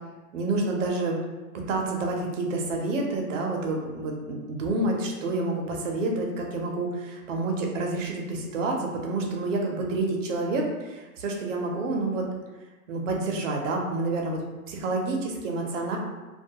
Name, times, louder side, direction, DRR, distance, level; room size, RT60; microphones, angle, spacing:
voice 1, 0.3-1.2 1.7-12.3 12.9-16.0, right 2 dB, 55° right, 0 dB, 0.6 m, -28 dB
2.2 x 2.2 x 2.7 m, 1.2 s
supercardioid pair, 170°, 46 cm